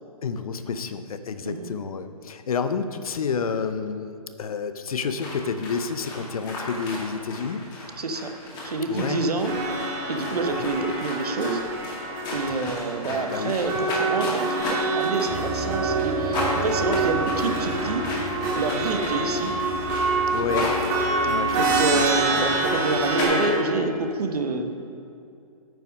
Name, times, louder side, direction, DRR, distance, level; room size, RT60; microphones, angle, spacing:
voice 1, 0.2-7.6 8.9-9.2 10.5-10.6 12.5-12.8 13.1-13.5 20.3-20.7 21.2-22.6, left 5 dB, 65° left, 10 dB, 0.7 m, -30 dB
sound 1, 5.2-23.2, left 2 dB, 20° left, 2.0 m, -34 dB
voice 2, 8.0-8.3 8.6-9.6 10.1-11.7 12.3-18.1 18.6-19.6 20.4-20.6 21.5-24.8, right 3 dB, 75° right, 6 dB, 1.0 m, -28 dB
sound 2, 9.5-23.5, right 2 dB, 30° right, 1.7 m, -26 dB
sound 3, 15.3-23.6, right 2 dB, 50° right, 1.6 m, -33 dB
9.0 x 5.7 x 5.3 m, 2.5 s
hypercardioid pair, 140°, 20 cm